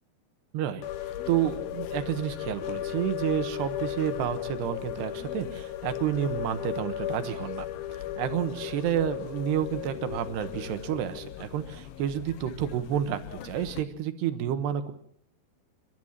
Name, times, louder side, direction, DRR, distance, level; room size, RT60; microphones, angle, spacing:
sound 1, 0.8-13.8, left 12 dB, 70° left, 2.8 m, -36 dB
voice 1, 1.3-7.7 8.2-14.9, right 10 dB, 75° right, 10 dB, 3.4 m, -30 dB
30.0 x 12.5 x 7.3 m, 0.65 s
omnidirectional pair, 4.8 m